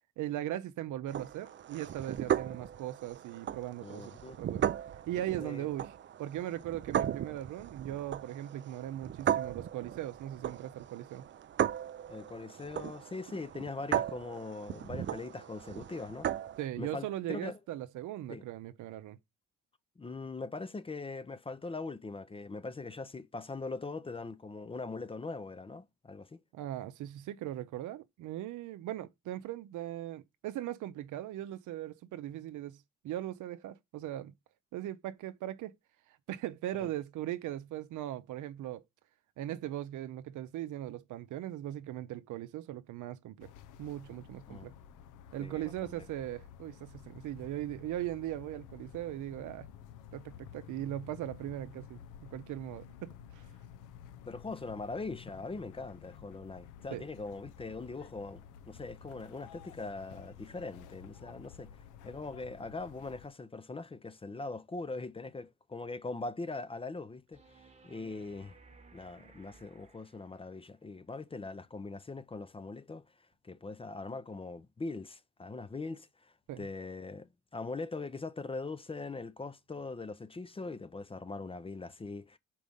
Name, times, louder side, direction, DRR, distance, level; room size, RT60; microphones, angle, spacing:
voice 1, 0.2-4.7 5.1-5.9 6.2-11.2 16.6-19.2 26.5-32.8 33.0-34.3 34.7-35.7 36.3-38.8 39.4-43.5 43.8-44.7 45.3-49.7 50.1-52.0 52.3-53.4 56.9-57.0 76.5-76.7, right 13 dB, 80° right, 0.6 m, -39 dB
sound 1, 1.1-16.7, right 10 dB, 40° right, 0.4 m, -37 dB
voice 2, 3.8-4.4 5.4-5.7 12.1-16.3 16.8-17.6 18.3-18.4 20.0-26.4 36.8-36.9 44.5-44.7 45.4-46.0 54.3-61.7 62.0-67.4 67.8-68.5 68.9-82.4, left 3 dB, 20° left, 0.5 m, -41 dB
sound 2, 43.4-63.3, left 8 dB, 85° left, 0.6 m, -52 dB
sound 3, 67.3-70.7 73.3-73.4, right 3 dB, 25° right, 1.1 m, -59 dB
5.0 x 4.6 x 5.4 m
cardioid pair, 90°, 30 cm